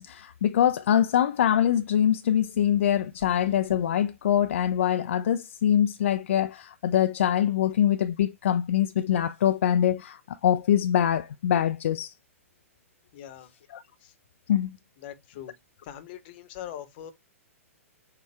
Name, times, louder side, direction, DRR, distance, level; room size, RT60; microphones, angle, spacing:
voice 1, 0.0-12.1 13.7-13.8 14.5-14.8, left 10 dB, 60° left, 0.3 m, -24 dB
voice 2, 13.1-13.5 14.0-14.1 15.0-15.5 15.8-17.1, left 10 dB, 40° left, 0.9 m, -41 dB
6.5 x 2.3 x 3.3 m
figure-of-eight pair, 110°, 8 cm